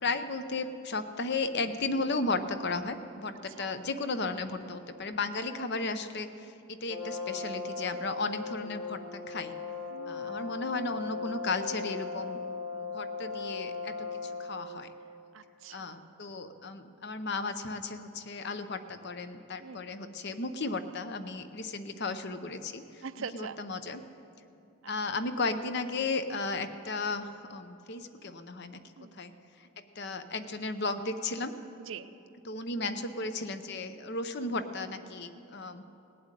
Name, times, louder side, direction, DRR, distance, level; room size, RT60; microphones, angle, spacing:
voice 1, 0.0-9.5 10.1-12.4 12.7-14.9 15.7-23.0 23.3-24.0 24.9-28.8 29.1-29.3 30.0-31.5 32.5-35.8, left 3 dB, 50° left, 10 dB, 0.7 m, -34 dB
voice 2, 3.5-3.8 5.5-5.6 9.9-10.6 15.3-16.2 19.6-19.9 21.9-22.0 23.0-23.6 24.8-24.9 29.0-29.2 31.8-32.1, right 6 dB, 60° right, 12 dB, 0.5 m, -44 dB
Brass instrument, 6.9-14.7, left 4 dB, 80° left, 2.2 m, -38 dB
18.5 x 7.8 x 9.1 m, 2.7 s
head